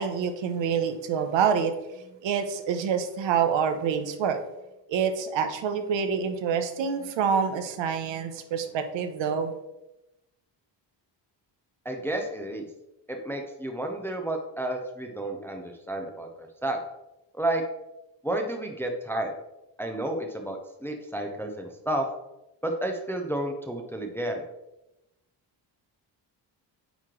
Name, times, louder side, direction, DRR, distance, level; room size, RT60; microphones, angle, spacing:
voice 1, 0.0-1.8 2.2-4.4 4.9-9.5, right 7 dB, 85° right, 8 dB, 0.8 m, -27 dB
voice 2, 11.9-12.7 13.1-16.8 17.3-17.6 18.2-19.4 19.8-22.1 22.6-24.5, right 1 dB, 5° left, 3 dB, 0.3 m, -31 dB
9.0 x 3.1 x 3.7 m, 0.94 s
wide cardioid pair, 175°, 44 cm